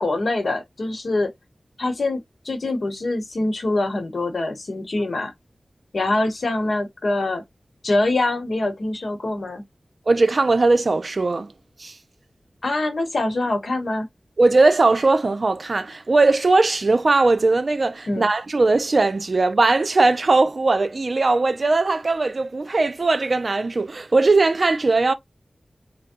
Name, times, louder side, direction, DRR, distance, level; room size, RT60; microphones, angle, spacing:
voice 1, 0.0-1.3 1.8-5.3 5.9-7.4 7.8-9.6 12.6-14.1 18.1-18.3, left 2 dB, 75° left, 0.9 m, -24 dB
voice 2, 10.1-11.5 11.8-12.0 14.4-25.1, right 3 dB, 60° right, 0.4 m, -19 dB
3.3 x 2.0 x 2.8 m
wide cardioid pair, 55°, 0 cm